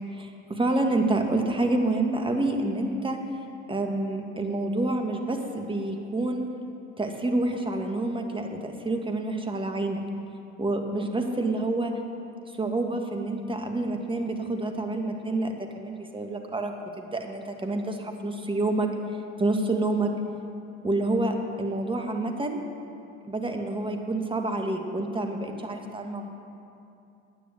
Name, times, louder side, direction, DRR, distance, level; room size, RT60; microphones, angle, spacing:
voice 1, 0.1-3.2 3.7-6.4 7.0-10.0 10.6-11.9 12.5-18.9 19.4-20.1 20.8-22.6 23.3-26.3, right 2 dB, 15° right, 4 dB, 1.7 m, -28 dB
10.5 x 9.3 x 7.8 m, 2.6 s
hypercardioid pair, 80°, 34 cm